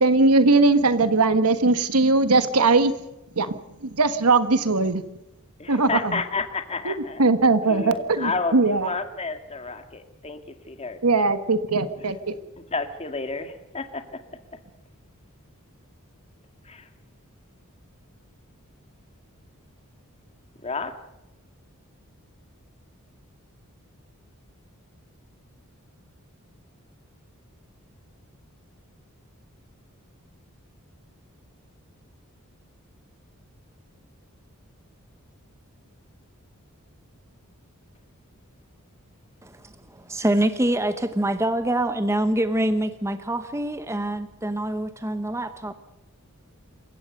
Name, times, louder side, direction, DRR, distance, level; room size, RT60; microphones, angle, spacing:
voice 1, 0.0-2.9 3.4-3.6 4.0-5.0 5.7-6.2 6.8-6.9 7.2-8.9 11.0-12.3, right 3 dB, 90° right, 11 dB, 1.5 m, -20 dB
voice 2, 5.6-7.2 7.6-10.4 10.7-11.0 12.7-14.0 16.6-16.9 20.6-20.9, left 4 dB, 30° left, 7 dB, 2.0 m, -30 dB
voice 3, 39.4-45.8, right 1 dB, 15° right, 10 dB, 1.0 m, -25 dB
27.5 x 15.5 x 6.6 m, 0.93 s
head